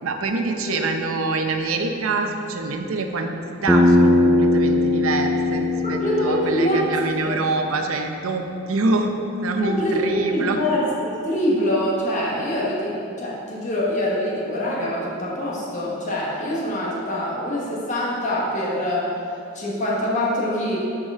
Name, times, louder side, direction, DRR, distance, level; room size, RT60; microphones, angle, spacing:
voice 1, 0.0-9.1 9.4-10.6, right 3 dB, 85° right, 4 dB, 0.6 m, -25 dB
Bass guitar, 3.7-8.0, left 2 dB, ahead, 0.4 m, -20 dB
voice 2, 5.8-6.9 7.2-7.4 9.6-19.1 19.5-20.8, equal, 35° left, -5 dB, 1.3 m, -24 dB
9.7 x 4.8 x 3.6 m, 2.7 s
head